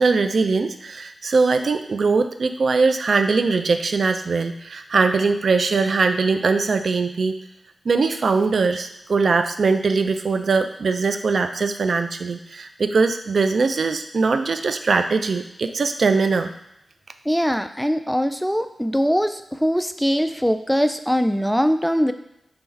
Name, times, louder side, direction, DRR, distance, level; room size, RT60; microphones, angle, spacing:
voice 1, 0.0-7.4 7.9-16.5, right 4 dB, 70° right, 8 dB, 0.3 m, -21 dB
voice 2, 17.3-22.1, equal, ahead, 9 dB, 0.4 m, -21 dB
3.2 x 3.1 x 4.7 m, 0.84 s
cardioid pair, 45°, 0 cm